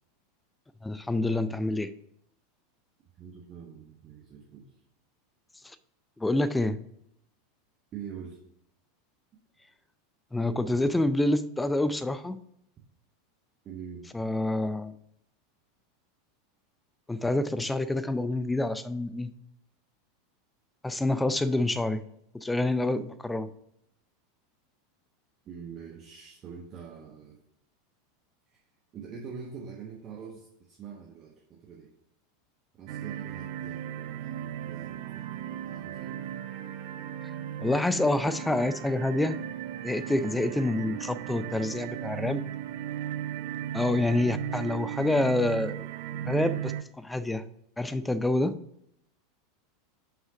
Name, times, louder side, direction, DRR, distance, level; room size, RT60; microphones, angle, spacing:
voice 1, 0.8-1.9 5.6-5.8 6.2-6.8 10.3-12.4 14.1-14.9 17.1-19.3 20.8-22.0 22.3-23.5 37.2-37.3 37.6-39.4 39.8-42.4 43.7-45.9 46.3-47.4 47.8-48.6, left 2 dB, 5° left, 15 dB, 0.5 m, -27 dB
voice 2, 3.2-4.7 7.9-8.4 13.6-14.1 25.4-27.4 28.5-28.6 28.9-31.9 32.7-36.3, right 7 dB, 35° right, -1 dB, 1.0 m, -44 dB
sound 1, 32.9-46.8, right 11 dB, 50° right, 0.4 m, -36 dB
5.6 x 5.6 x 4.9 m, 0.76 s
figure-of-eight pair, 85°, 0 cm